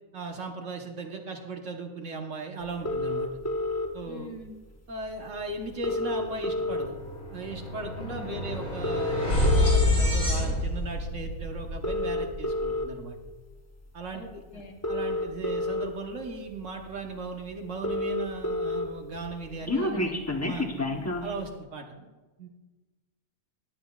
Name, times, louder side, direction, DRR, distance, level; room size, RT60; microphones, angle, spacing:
voice 1, 0.1-3.3 3.9-4.3 4.9-7.0 7.3-13.2 13.9-20.0 20.4-20.7 21.2-21.8 22.4-22.5, right 3 dB, 55° right, 3 dB, 1.3 m, -37 dB
sound 1, 2.8-3.9 5.0-5.1 5.4-5.5 5.7-7.1 7.6-7.8 8.7-9.8 10.5-10.8 11.7-12.8 14.1-14.2 14.7-15.8 16.5-16.6 16.9-17.0 17.2-17.3 17.5-18.8 19.2-21.3, left 2 dB, 15° left, 0.6 m, -29 dB
voice 2, 4.0-4.5 8.0-8.4 14.1-14.7 19.7-20.2 20.7-21.0 22.0-22.1, left 2 dB, 85° left, 1 dB, 2.0 m, -44 dB
sound 2, 6.1-6.3 6.6-12.8, left 1 dB, 35° left, 4.2 m, -28 dB
20.0 x 7.8 x 2.3 m, 1.2 s
omnidirectional pair, 1.6 m